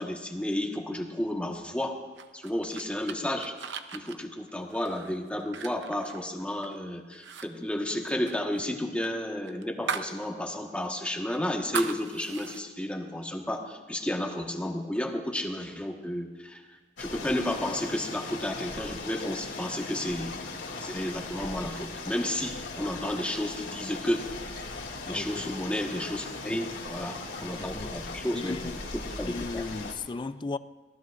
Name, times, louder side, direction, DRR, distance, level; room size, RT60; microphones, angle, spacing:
voice 1, 0.0-2.0 2.3-3.5 3.9-16.6 17.0-20.3 20.8-24.3 25.1-28.6 29.2-29.7, left 1 dB, 5° left, 1.4 m, -32 dB
sound 1, 2.2-6.8 7.1-7.5 7.7-10.2 10.5-10.6 11.1-12.6, right 6 dB, 65° right, 0.8 m, -38 dB
sound 2, 17.0-29.9, left 3 dB, 80° left, 2.7 m, -39 dB
voice 2, 25.0-25.4 26.5-26.6 27.4-28.0 28.3-28.9 29.2-30.6, left 3 dB, 25° left, 0.4 m, -36 dB
24.5 x 18.5 x 2.5 m
head